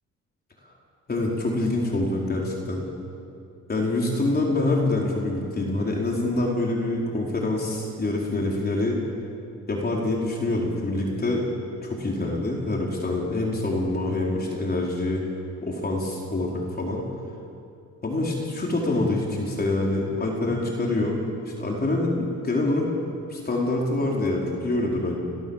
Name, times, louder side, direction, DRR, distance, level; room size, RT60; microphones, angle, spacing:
voice 1, 1.1-2.8 3.7-9.0 9.7-11.5 11.8-15.2 15.6-17.0 18.0-22.9 23.3-25.2, left 2 dB, 30° left, -2 dB, 4.7 m, -25 dB
30.0 x 18.5 x 7.4 m, 2.5 s
cardioid pair, 90°, 30 cm